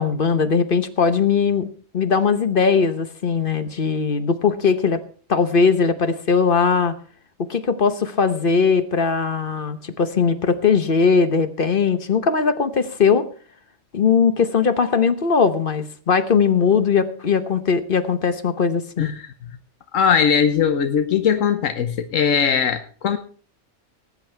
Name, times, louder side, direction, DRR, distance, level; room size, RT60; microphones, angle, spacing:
voice 1, 0.0-1.7 1.9-5.0 5.3-7.0 7.5-13.3 13.9-19.1, left 5 dB, 45° left, 10 dB, 1.1 m, -19 dB
voice 2, 19.0-19.3 19.9-23.2, left 7 dB, 85° left, 9 dB, 1.3 m, -20 dB
19.0 x 8.5 x 4.5 m, 0.41 s
omnidirectional pair, 1.3 m